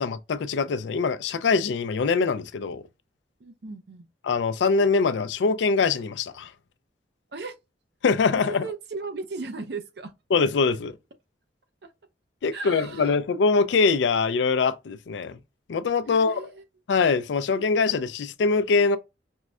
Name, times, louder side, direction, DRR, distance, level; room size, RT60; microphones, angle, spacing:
voice 1, 0.0-2.8 4.2-6.5 8.0-8.6 10.3-10.9 12.4-15.4 15.7-16.4 16.9-19.0, left 4 dB, 80° left, 0.4 m, -23 dB
voice 2, 3.4-4.1 7.3-7.6 8.4-10.1 11.8-11.9 12.5-13.2 16.1-16.6, right 4 dB, 65° right, 0.5 m, -36 dB
4.5 x 2.1 x 2.3 m
head